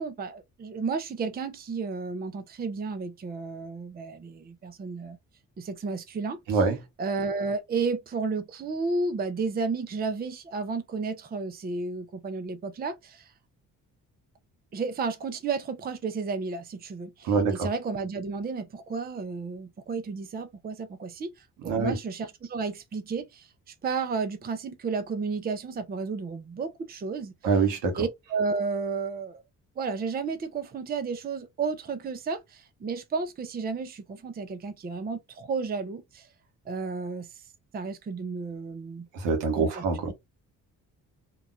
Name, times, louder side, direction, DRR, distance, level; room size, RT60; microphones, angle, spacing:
voice 1, 0.0-5.2 5.6-6.6 7.0-13.3 14.7-21.3 21.6-27.3 28.0-29.4 29.8-36.3 36.7-37.3 37.7-39.1 39.6-40.1, right 4 dB, 20° right, 0.5 m, -32 dB
voice 2, 6.5-6.8 17.2-17.7 21.7-21.9 27.4-28.0 39.1-40.1, right 4 dB, 75° right, 1.0 m, -25 dB
2.8 x 2.2 x 2.5 m
hypercardioid pair, 45°, 43 cm